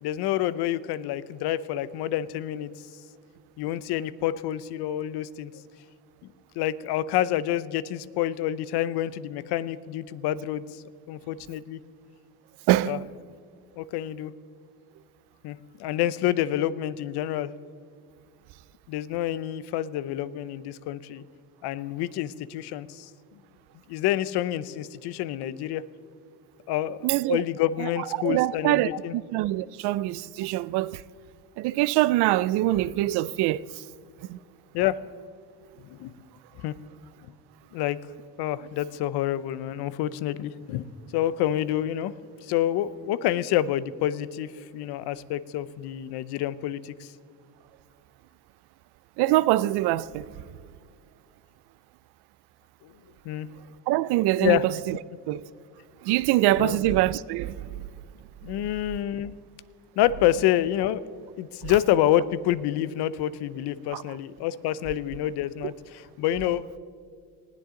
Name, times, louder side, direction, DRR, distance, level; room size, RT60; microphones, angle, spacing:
voice 1, 0.0-2.7 3.6-5.5 6.6-11.8 12.9-13.0 13.8-14.3 15.4-17.5 18.9-21.2 21.6-23.1 23.9-25.8 26.7-29.2 34.7-35.0 35.8-36.1 36.6-36.7 37.7-38.0 38.4-42.1 42.4-47.1 52.8-52.9 53.2-53.5 54.4-54.6 56.6-56.8 58.4-59.4 60.0-61.1 61.4-66.6, left 12 dB, 75° left, 0.8 m, -28 dB
voice 2, 12.7-13.1 27.0-27.4 28.2-31.0 31.6-33.7 34.3-34.4 49.2-50.3 53.9-55.0 55.3-55.4 56.0-57.7 63.9-64.0, right 16 dB, 75° right, 0.6 m, -24 dB
19.5 x 16.0 x 3.8 m
cardioid pair, 110°, 39 cm